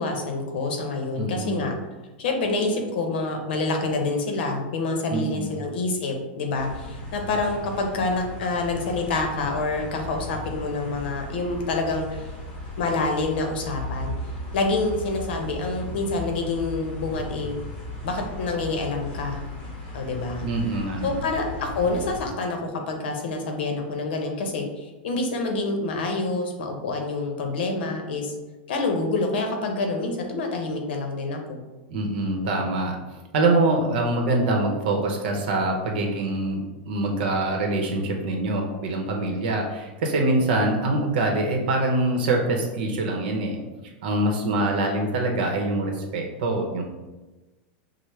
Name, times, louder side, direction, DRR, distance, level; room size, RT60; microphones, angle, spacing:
voice 1, 0.0-1.7 2.2-12.2 12.8-14.1 14.5-17.6 18.0-19.4 19.9-20.4 21.0-28.3 28.7-31.6, left 3 dB, 70° left, 3 dB, 0.8 m, -27 dB
voice 2, 1.2-1.6 5.1-5.6 20.4-21.2 31.9-33.0 33.3-43.6 44.0-46.8, right 2 dB, 65° right, 1 dB, 0.8 m, -24 dB
sound 1, 6.5-22.3, left 1 dB, 30° left, 1.4 m, -36 dB
5.8 x 2.1 x 3.1 m, 1.2 s
supercardioid pair, 165°, 6 cm